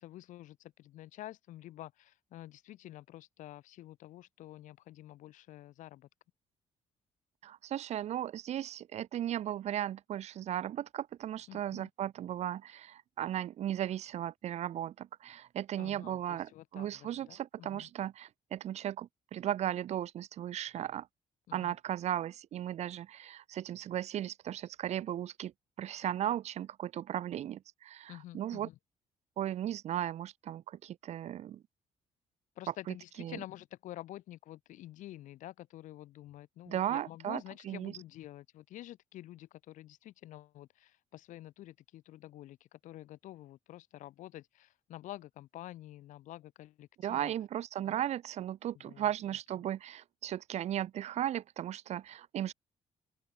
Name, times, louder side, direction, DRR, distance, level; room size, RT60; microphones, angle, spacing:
voice 1, 0.0-6.1 11.5-11.9 15.8-17.9 21.5-21.8 28.1-28.8 32.6-47.3 47.8-47.9 48.8-49.1 49.6-49.7, left 14 dB, 80° left, 5.8 m, -49 dB
voice 2, 7.4-21.1 21.5-25.5 25.8-28.7 29.4-31.6 33.2-33.4 36.7-37.9 47.0-52.5, right 11 dB, 60° right, 3.4 m, -36 dB
open air
cardioid pair, 155°, 13 cm